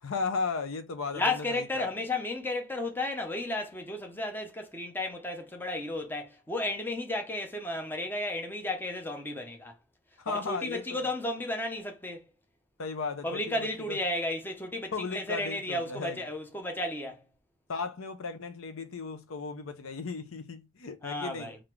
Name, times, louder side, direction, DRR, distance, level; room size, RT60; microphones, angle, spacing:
voice 1, 0.0-1.9 10.2-11.1 12.8-14.0 14.9-16.3 17.7-21.5, left 4 dB, 75° left, 0.6 m, -36 dB
voice 2, 1.1-9.7 10.3-12.3 13.2-17.2 21.0-21.6, left 2 dB, 10° left, 0.6 m, -33 dB
3.9 x 2.5 x 4.4 m
head